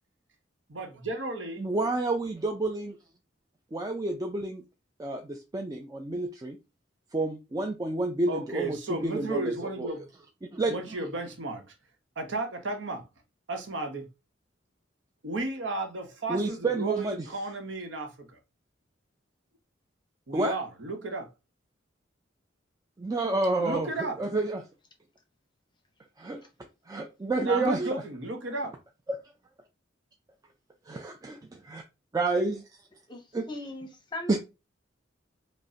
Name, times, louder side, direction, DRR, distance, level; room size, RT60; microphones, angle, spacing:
voice 1, 0.7-1.6 8.3-10.1 10.7-11.6 12.2-13.0 13.5-14.1 15.2-18.3 20.3-21.3 23.6-24.2 27.4-28.7, right 2 dB, 70° right, 0.9 m, -33 dB
voice 2, 1.6-3.0 3.7-4.6 5.0-6.6 7.1-9.9 10.5-10.8 16.3-17.3 20.3-20.5 23.0-24.6 26.2-26.4 26.9-28.0 29.1-29.2 30.9-31.8 32.1-32.6 33.3-33.5 34.3-34.4, right 2 dB, 20° right, 0.4 m, -29 dB
voice 3, 33.1-34.4, left 1 dB, 25° left, 0.7 m, -39 dB
5.2 x 2.1 x 2.7 m
head